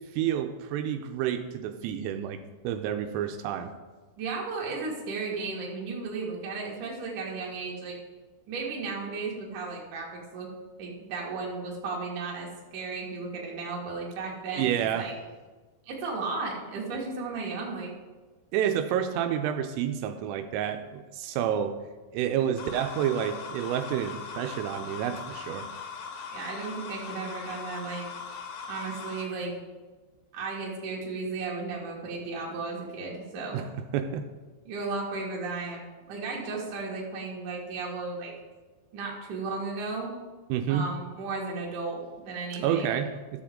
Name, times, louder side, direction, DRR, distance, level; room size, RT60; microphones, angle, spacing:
voice 1, 0.1-3.7 14.6-15.1 18.5-21.8 22.1-25.7 33.5-33.7 33.9-34.3 40.5-40.9 42.6-43.4, right 9 dB, 85° right, 6 dB, 3.2 m, -29 dB
voice 2, 4.2-8.0 8.5-10.5 10.8-12.5 12.7-15.1 15.9-17.9 26.3-28.0 28.7-29.5 30.3-33.6 34.6-38.3 38.9-40.2 40.7-43.0, right 4 dB, 55° right, -3 dB, 2.6 m, -34 dB
sound 1, 22.6-29.2, left 5 dB, 70° left, 2.7 m, -40 dB
13.5 x 6.9 x 3.7 m, 1.3 s
omnidirectional pair, 5.7 m